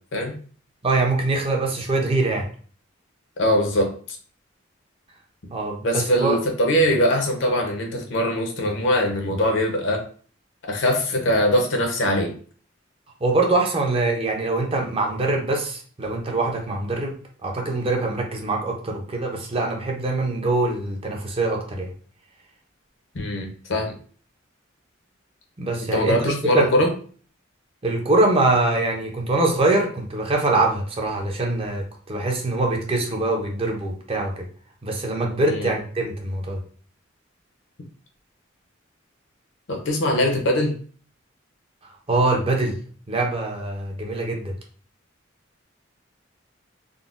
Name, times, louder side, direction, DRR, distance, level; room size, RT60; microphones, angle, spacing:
voice 1, 0.8-2.5 5.5-6.4 13.2-17.2 17.4-21.9 25.6-26.7 27.8-34.5 34.8-36.6 42.1-42.8 43.1-44.5, right 2 dB, 30° right, 1 dB, 0.6 m, -23 dB
voice 2, 3.4-4.2 5.8-10.0 10.6-12.3 23.1-23.9 25.9-26.9 35.5-35.7 39.7-40.7, equal, 65° left, 2 dB, 0.7 m, -22 dB
3.7 x 2.1 x 2.4 m, 0.43 s
head